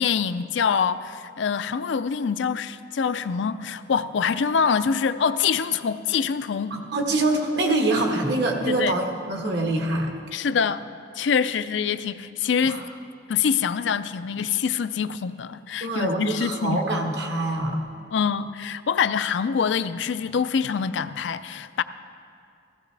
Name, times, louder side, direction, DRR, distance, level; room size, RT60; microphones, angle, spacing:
voice 1, 0.0-6.8 8.7-9.0 10.3-10.8 11.2-12.8 13.3-16.8 18.1-21.8, left 6 dB, 70° left, 0.4 m, -25 dB
voice 2, 6.7-10.1 12.6-12.8 15.8-17.8, right 2 dB, 60° right, 1.5 m, -25 dB
15.5 x 15.5 x 3.3 m
head